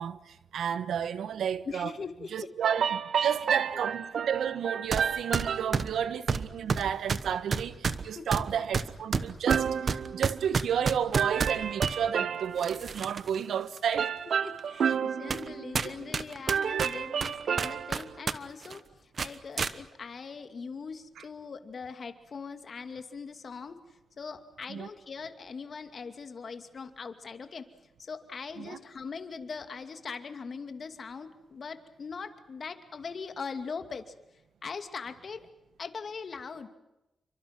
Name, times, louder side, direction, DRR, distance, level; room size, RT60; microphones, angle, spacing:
voice 1, 0.0-1.9 2.3-14.1 14.9-15.0 16.7-16.9 21.2-21.3 24.7-24.9 28.6-28.8, right 8 dB, 90° right, 1.2 m, -32 dB
voice 2, 1.7-2.5 3.2-3.4 8.1-8.4 14.4-23.8 24.2-27.7 28.0-34.0 34.6-35.4 35.8-36.7, left 5 dB, 50° left, 2.6 m, -41 dB
sound 1, 2.6-5.8 9.5-10.8 11.1-12.8 14.0-16.2 16.5-18.1, right 7 dB, 70° right, 0.8 m, -31 dB
Paper-covered Cardboard Impacts, 4.9-5.1 5.3-12.0 12.6-13.3 13.8-13.9 14.6-14.7 15.3-15.5 15.7-18.4 18.6-18.8 19.2-19.7, right 5 dB, 50° right, 1.2 m, -30 dB
29.5 x 24.5 x 6.1 m
cardioid pair, 105°, 0 cm